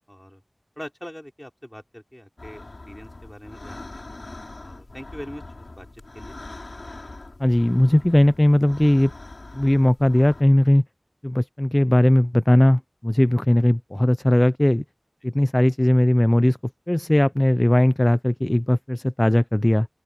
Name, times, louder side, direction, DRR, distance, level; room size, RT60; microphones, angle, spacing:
voice 1, 0.1-0.4 0.8-4.0 4.6-6.4, equal, 10° left, 4.5 m, -42 dB
sound 1, 2.4-10.4, left 2 dB, 85° left, 5.4 m, -42 dB
voice 2, 7.4-9.1 9.5-10.8 11.2-14.8 15.2-16.6 16.9-19.9, left 1 dB, 25° left, 0.4 m, -18 dB
open air
wide cardioid pair, 40°, 0 cm